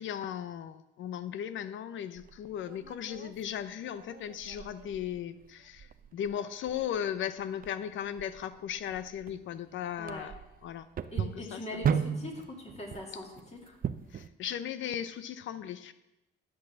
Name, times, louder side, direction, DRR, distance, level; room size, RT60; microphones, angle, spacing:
voice 1, 0.0-10.3 10.6-10.9 11.1-11.9 14.1-15.9, left 9 dB, 75° left, 13 dB, 0.8 m, -37 dB
sound 1, 2.2-14.3, right 8 dB, 45° right, 0.6 m, -38 dB
voice 2, 10.0-10.3 11.1-13.8, left 2 dB, 35° left, 1 dB, 2.6 m, -42 dB
10.5 x 6.4 x 7.1 m, 0.93 s
cardioid pair, 90°, 20 cm